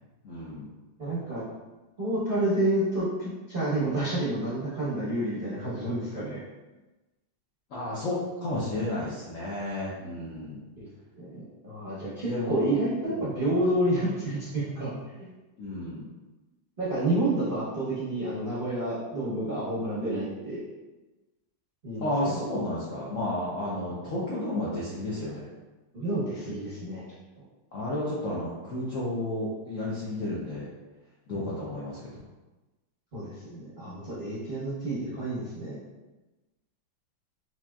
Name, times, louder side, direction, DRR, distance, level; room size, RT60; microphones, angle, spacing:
voice 1, 0.2-0.7 7.7-10.6 12.3-12.7 13.1-13.3 15.6-16.1 22.0-25.5 27.7-30.7 31.3-32.0, left 1 dB, 70° left, -7 dB, 0.7 m, -32 dB
voice 2, 1.0-1.4 2.0-6.4 10.8-10.9 11.2-14.9 15.2-15.3 16.8-20.6 21.8-22.4 25.9-27.0 31.3-31.5 33.1-35.8, right 1 dB, 45° right, -10 dB, 0.7 m, -29 dB
4.2 x 3.0 x 2.3 m, 1.1 s
omnidirectional pair, 2.1 m